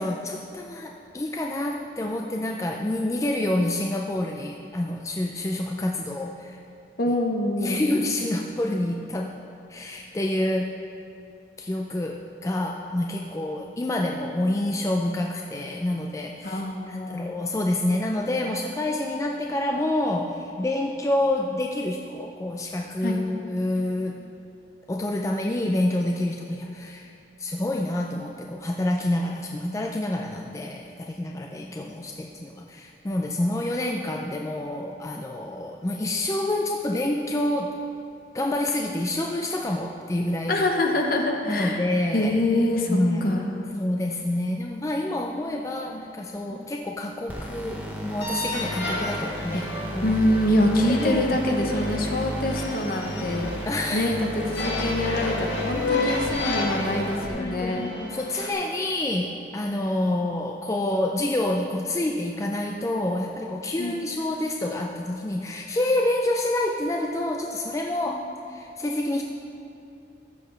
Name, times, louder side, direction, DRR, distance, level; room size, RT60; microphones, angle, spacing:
voice 1, 0.0-6.6 7.6-9.3 9.7-10.7 11.6-16.6 16.9-24.2 24.9-27.1 27.4-37.7 38.3-40.6 41.4-42.3 42.9-43.4 43.7-49.7 49.9-50.2 50.9-51.2 53.6-54.1 55.1-55.2 55.7-56.5 57.3-69.2, left 1 dB, 15° left, 1 dB, 0.4 m, -28 dB
voice 2, 7.0-7.8 16.4-17.3 23.0-23.2 40.5-41.8 42.1-43.5 46.5-46.7 49.5-49.6 50.0-53.5 53.9-57.9 63.8-64.0 68.1-68.2, left 1 dB, 55° left, 2 dB, 0.9 m, -25 dB
sound 1, 47.3-57.3, equal, 10° right, 0.8 m, -34 dB
sound 2, 48.2-58.5, left 2 dB, 80° left, 1.4 m, -32 dB
14.5 x 6.8 x 3.3 m, 2.6 s
head